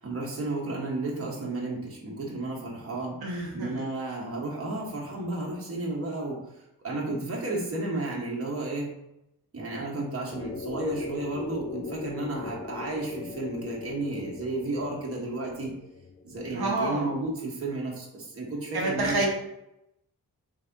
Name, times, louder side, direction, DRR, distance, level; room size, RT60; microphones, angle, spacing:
voice 1, 0.0-3.2 3.5-6.4 6.8-8.9 9.5-15.7 16.2-19.3, right 2 dB, 35° right, -3 dB, 1.3 m, -32 dB
voice 2, 3.2-3.7 16.5-17.1 18.7-19.3, right 2 dB, 75° right, -3 dB, 1.2 m, -28 dB
sound 1, 10.3-16.8, left 4 dB, 30° left, 0.4 m, -40 dB
3.4 x 3.3 x 3.9 m, 0.84 s
cardioid pair, 95°, 38 cm